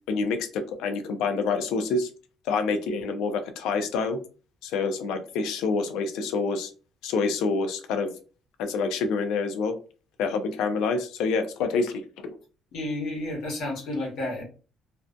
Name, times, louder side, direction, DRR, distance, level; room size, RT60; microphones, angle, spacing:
voice 1, 0.1-2.1 2.5-4.2 4.6-6.7 7.0-8.1 8.6-9.8 10.2-12.4, left 4 dB, 80° left, 7 dB, 0.4 m, -27 dB
voice 2, 12.7-14.4, left 1 dB, 65° left, -1 dB, 1.1 m, -31 dB
2.5 x 2.2 x 2.4 m, 0.36 s
cardioid pair, 150°, 0 cm